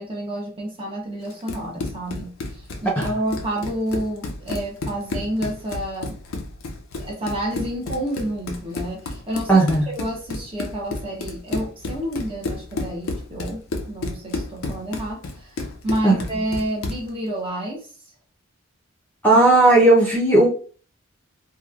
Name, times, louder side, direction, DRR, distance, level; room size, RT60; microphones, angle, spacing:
voice 1, 0.0-6.2 7.0-17.9 19.3-19.4, right 1 dB, 25° right, -2 dB, 0.8 m, -29 dB
Run, 1.3-17.1, left 2 dB, 75° left, 0.5 m, -32 dB
voice 2, 9.5-9.9 16.0-16.1 19.2-20.5, right 2 dB, 10° left, -5 dB, 0.6 m, -15 dB
2.9 x 2.3 x 2.4 m, 0.40 s
head